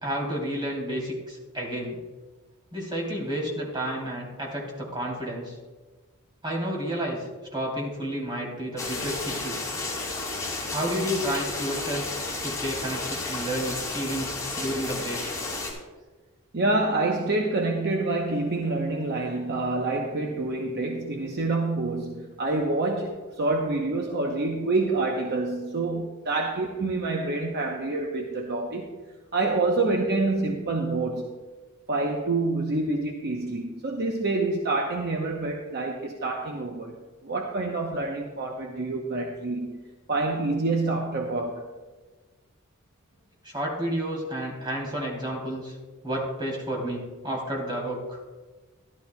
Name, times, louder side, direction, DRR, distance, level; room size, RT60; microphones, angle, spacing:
voice 1, 0.0-2.0 2.7-5.6 6.4-9.6 10.7-12.1 12.4-15.4 43.4-45.8 46.0-48.2, equal, 20° right, -2 dB, 3.1 m, -31 dB
sound 1, 8.8-15.7, left 3 dB, 15° left, 2.9 m, -32 dB
voice 2, 16.5-28.9 29.3-31.4 31.9-36.9 37.2-39.8 40.1-41.7, right 2 dB, 50° right, 1 dB, 0.8 m, -27 dB
14.0 x 12.0 x 2.3 m, 1.3 s
head